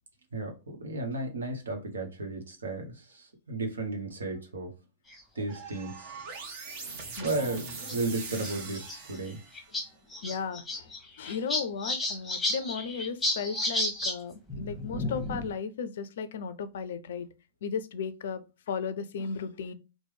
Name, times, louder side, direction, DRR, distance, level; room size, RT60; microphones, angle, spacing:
voice 1, 0.3-4.7 5.4-6.1 7.2-7.6 7.9-9.4, right 2 dB, 75° right, 0.9 m, -34 dB
sound 1, 5.1-5.4 6.3-6.4 6.7-6.8 7.9-8.0 8.3-9.0 9.3-9.4 9.5-9.8 10.1-14.1 14.5-15.5, left 1 dB, 5° left, 1.0 m, -32 dB
sound 2, 5.5-9.8, right 4 dB, 45° right, 0.9 m, -42 dB
voice 2, 7.2-7.6 10.2-10.9 11.2-17.3 17.6-18.4 18.7-19.7, left 6 dB, 60° left, 0.4 m, -35 dB
3.0 x 2.1 x 3.3 m
figure-of-eight pair, 100°, 0 cm